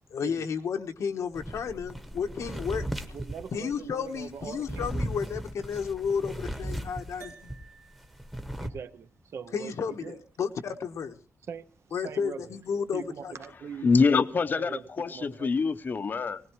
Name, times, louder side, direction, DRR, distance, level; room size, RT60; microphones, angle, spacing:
voice 1, 0.1-2.9 3.5-7.5 9.5-11.1 11.9-13.4, left 6 dB, 85° left, 1.2 m, -32 dB
sound 1, 1.3-7.6 7.9-8.7, equal, 5° right, 1.0 m, -36 dB
voice 2, 3.1-5.1 8.6-10.2 11.5-12.5 12.9-13.9 14.5-15.5, right 6 dB, 60° right, 0.6 m, -42 dB
sound 2, 7.2-11.8, right 5 dB, 85° right, 2.2 m, -56 dB
voice 3, 13.8-16.4, left 4 dB, 40° left, 0.7 m, -25 dB
19.5 x 19.0 x 3.1 m
wide cardioid pair, 175°, 5 cm